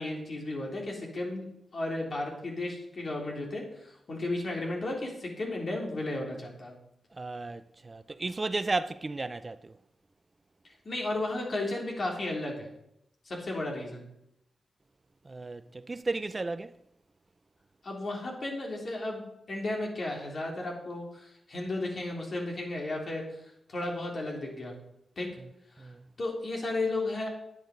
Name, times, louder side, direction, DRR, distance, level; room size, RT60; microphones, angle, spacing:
voice 1, 0.0-1.4 1.7-6.7 10.6-12.7 13.2-14.0 17.8-24.7 25.1-25.3 25.8-25.9 26.2-27.3, left 2 dB, 55° left, 3.5 m, -34 dB
voice 2, 7.1-9.8 15.2-16.8 25.8-26.0, right 3 dB, 35° right, 0.5 m, -34 dB
9.7 x 8.8 x 5.1 m
supercardioid pair, 45°, 0 cm